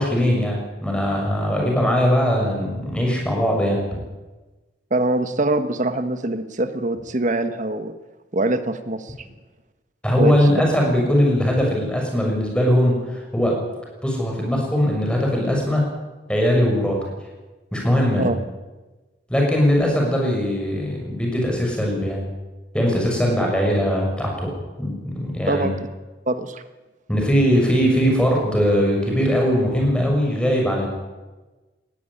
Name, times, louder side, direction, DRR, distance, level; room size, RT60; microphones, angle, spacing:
voice 1, 0.0-3.8 10.0-13.6 14.0-15.8 16.3-17.0 17.7-18.3 19.3-22.2 22.7-24.5 24.8-25.7 27.1-30.9, equal, 5° left, -1 dB, 6.3 m, -20 dB
voice 2, 4.9-7.9 8.3-9.1 10.2-10.3 18.2-18.4 25.5-25.8 26.3-26.6, right 2 dB, 45° right, 10 dB, 1.3 m, -23 dB
19.5 x 14.0 x 10.0 m, 1.2 s
head